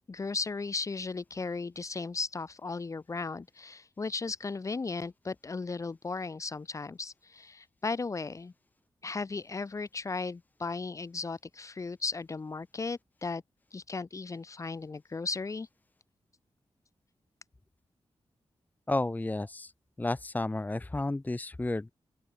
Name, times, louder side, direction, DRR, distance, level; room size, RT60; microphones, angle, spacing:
voice 1, 0.1-8.5 9.0-13.4 13.7-15.7, left 4 dB, 30° left, 1.0 m, -36 dB
voice 2, 18.9-19.7 20.0-21.9, left 2 dB, 15° left, 1.3 m, -32 dB
open air
wide cardioid pair, 145°, 10 cm